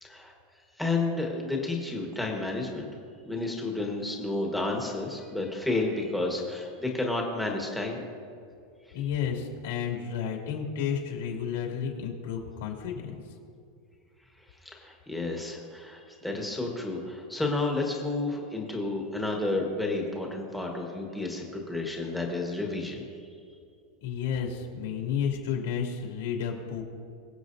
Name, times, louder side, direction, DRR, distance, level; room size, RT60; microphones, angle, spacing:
voice 1, 0.0-0.3 0.8-2.9 3.2-8.0 14.6-23.1, left 2 dB, ahead, 0 dB, 1.3 m, -31 dB
voice 2, 8.9-13.2 24.0-26.9, left 7 dB, 75° left, 0 dB, 2.5 m, -32 dB
23.0 x 7.7 x 2.7 m, 2.4 s
supercardioid pair, 175°, 0 cm